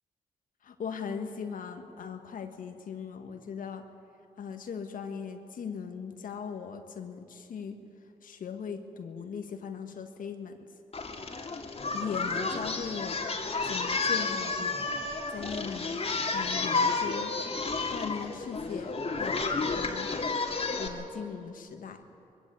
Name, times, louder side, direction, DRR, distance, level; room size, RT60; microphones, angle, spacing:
voice 1, 0.6-3.9 4.4-7.8 8.2-10.6 11.9-13.3 13.6-14.9 15.3-16.0 16.3-17.3 17.9-20.1 20.8-22.0, left 6 dB, 65° left, 6 dB, 1.6 m, -39 dB
Singing, 10.9-20.9, left 3 dB, 40° left, 2.4 m, -31 dB
20.5 x 15.5 x 8.4 m, 2.7 s
supercardioid pair, 50°, 15 cm